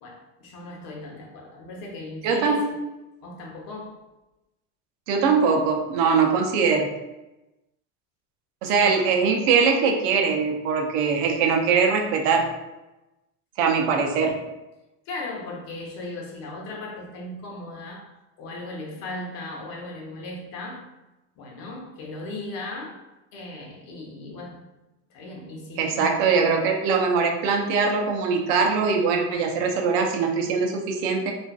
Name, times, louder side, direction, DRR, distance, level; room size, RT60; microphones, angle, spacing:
voice 1, 0.0-2.7 3.2-4.0 8.7-8.9 15.1-18.1 18.4-20.9 21.4-23.0 23.3-24.6 25.1-26.3, left 2 dB, 65° left, -1 dB, 0.8 m, -37 dB
voice 2, 2.2-2.6 5.1-6.9 8.6-12.5 13.6-14.3 25.8-31.3, right 5 dB, 75° right, 3 dB, 0.6 m, -22 dB
2.4 x 2.4 x 2.3 m, 1.0 s
supercardioid pair, 100°, 37 cm